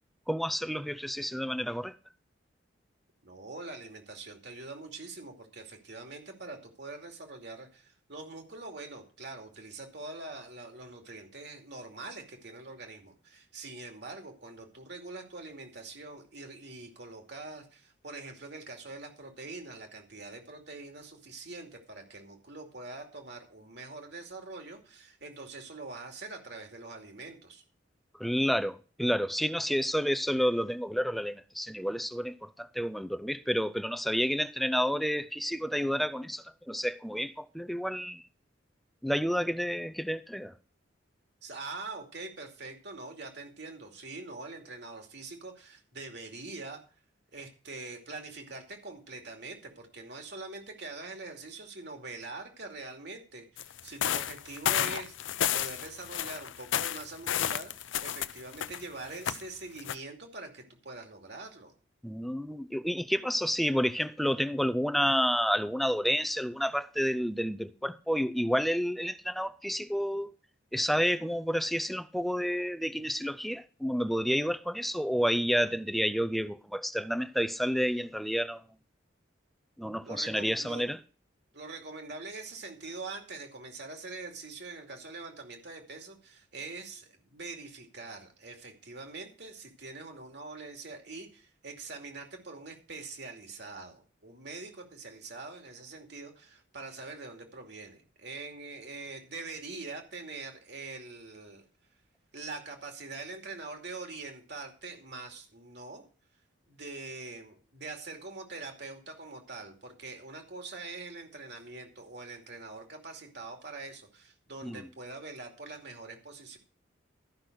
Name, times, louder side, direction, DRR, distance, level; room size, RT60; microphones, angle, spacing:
voice 1, 0.3-2.0 28.2-38.2 39.0-40.5 62.0-70.3 70.7-78.6 79.8-81.0 114.6-114.9, equal, ahead, 0.4 m, -30 dB
voice 2, 3.2-27.6 41.4-46.8 47.3-55.1 55.5-61.7 80.1-80.8 81.5-101.6 102.3-106.0 106.7-116.6, right 3 dB, 60° right, 2.5 m, -44 dB
sound 1, 53.6-58.8 59.1-59.4 59.8-59.9, left 10 dB, 75° left, 0.5 m, -31 dB
13.5 x 6.0 x 6.4 m
head